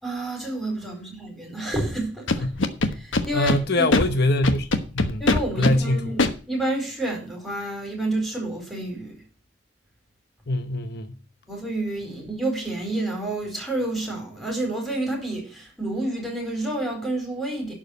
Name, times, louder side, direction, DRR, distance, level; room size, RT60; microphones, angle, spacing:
voice 1, 0.0-2.3 2.9-3.9 5.2-9.2 11.5-17.7, right 1 dB, ahead, 4.2 m, -29 dB
Scratching (performance technique), 2.3-3.6 3.9-4.0 4.4-5.7 6.2-6.3, left 2 dB, 90° left, 1.1 m, -21 dB
voice 2, 3.3-5.3 5.6-6.1 10.5-11.2, left 1 dB, 60° left, 0.9 m, -24 dB
11.5 x 4.9 x 8.0 m
head